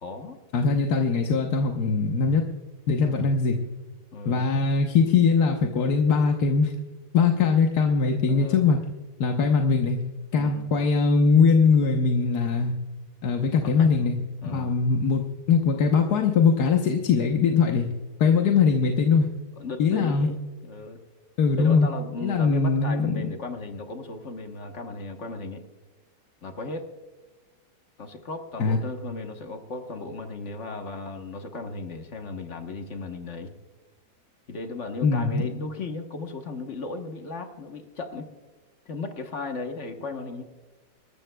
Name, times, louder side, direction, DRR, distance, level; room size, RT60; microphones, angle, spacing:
voice 1, 0.0-0.4 3.0-3.4 4.1-4.5 8.3-8.6 10.3-10.7 13.6-14.1 14.4-14.8 19.6-21.0 21.5-25.6 26.4-26.9 28.0-33.5 34.5-38.3 38.8-40.4, left 3 dB, 45° left, 5 dB, 1.3 m, -36 dB
voice 2, 0.5-2.4 2.9-3.6 4.2-6.7 7.1-8.8 9.2-10.0 10.3-12.7 13.2-14.2 14.5-17.9 18.2-19.3 19.8-20.3 21.4-21.9 22.2-23.1 28.6-28.8 35.0-35.4, left 5 dB, 65° left, 2 dB, 1.5 m, -21 dB
26.0 x 14.0 x 2.3 m, 1.3 s
omnidirectional pair, 1.9 m